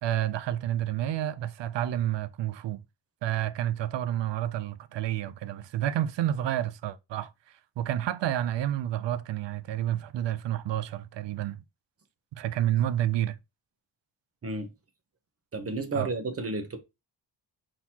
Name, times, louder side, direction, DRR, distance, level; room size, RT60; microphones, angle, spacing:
voice 1, 0.0-2.8 3.2-11.6 12.3-13.4 15.9-16.1, right 12 dB, 80° right, 0.5 m, -30 dB
voice 2, 15.5-16.8, right 3 dB, 35° right, 0.8 m, -32 dB
4.4 x 3.9 x 2.8 m
wide cardioid pair, 135°, 43 cm